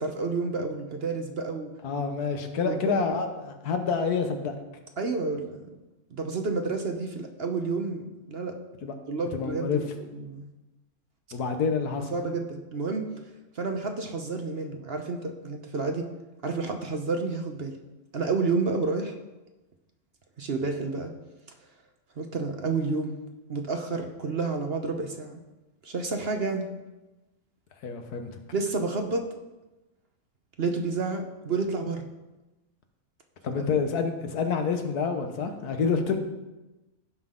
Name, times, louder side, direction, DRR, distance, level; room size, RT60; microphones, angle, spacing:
voice 1, 0.0-1.7 2.7-2.9 5.0-5.7 6.1-8.5 9.1-9.8 10.2-10.5 12.1-13.1 13.6-16.1 16.4-17.8 18.1-19.1 20.4-21.1 22.2-23.2 23.5-25.4 25.8-26.7 28.5-29.2 30.6-32.0 33.5-33.6, right 3 dB, 45° right, 4 dB, 1.0 m, -30 dB
voice 2, 1.8-4.5 8.8-8.9 9.3-9.8 11.3-12.1 27.8-28.3 33.4-36.2, left 5 dB, 85° left, 6 dB, 1.6 m, -28 dB
16.0 x 6.0 x 3.8 m, 1.1 s
omnidirectional pair, 1.6 m